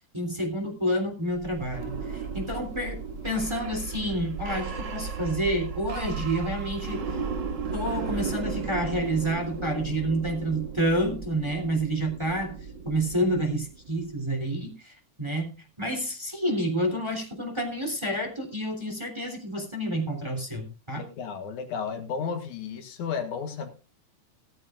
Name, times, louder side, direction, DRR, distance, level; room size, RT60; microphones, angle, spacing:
voice 1, 0.1-7.0 7.7-12.6 12.8-21.1, right 1 dB, 10° right, 2 dB, 3.0 m, -29 dB
sound 1, 1.3-14.1, right 5 dB, 40° right, 1.9 m, -35 dB
voice 2, 20.9-23.7, left 6 dB, 70° left, 6 dB, 3.0 m, -33 dB
17.5 x 13.5 x 2.5 m, 0.32 s
omnidirectional pair, 3.6 m